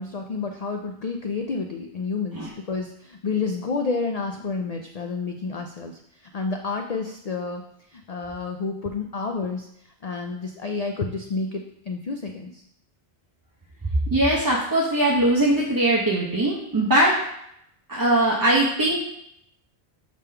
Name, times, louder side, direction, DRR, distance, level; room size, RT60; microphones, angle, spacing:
voice 1, 0.0-7.6 7.9-9.7 10.0-12.6, left 4 dB, 55° left, 4 dB, 0.4 m, -30 dB
voice 2, 14.1-17.1 17.9-19.0, right 1 dB, 20° right, -5 dB, 0.7 m, -20 dB
5.0 x 3.6 x 5.6 m, 0.73 s
omnidirectional pair, 1.2 m